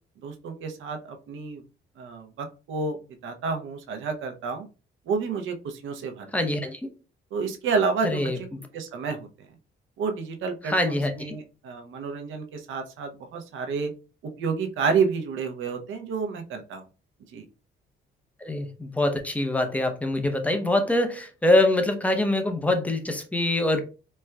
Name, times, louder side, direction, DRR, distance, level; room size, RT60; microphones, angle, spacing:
voice 1, 0.2-1.6 2.0-3.0 3.2-4.7 5.1-6.3 7.3-8.5 8.7-9.3 10.0-13.9 14.4-16.8 17.3-17.4, right 5 dB, 75° right, 0.7 m, -29 dB
voice 2, 6.3-6.8 8.0-8.4 10.7-11.3 18.4-23.8, left 1 dB, 5° left, 0.7 m, -24 dB
4.2 x 2.3 x 2.3 m
cardioid pair, 90°, 20 cm